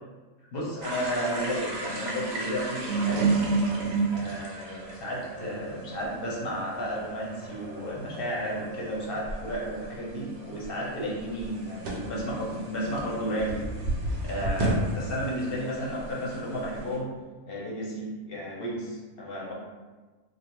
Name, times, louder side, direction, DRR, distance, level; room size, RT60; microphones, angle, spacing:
voice 1, 0.5-3.4 4.1-13.5 14.2-17.1 17.5-19.5, equal, 55° left, -4 dB, 0.7 m, -33 dB
sound 1, 0.8-17.0, right 3 dB, 65° right, 0.8 m, -33 dB
2.4 x 2.3 x 2.9 m, 1.3 s
omnidirectional pair, 1.4 m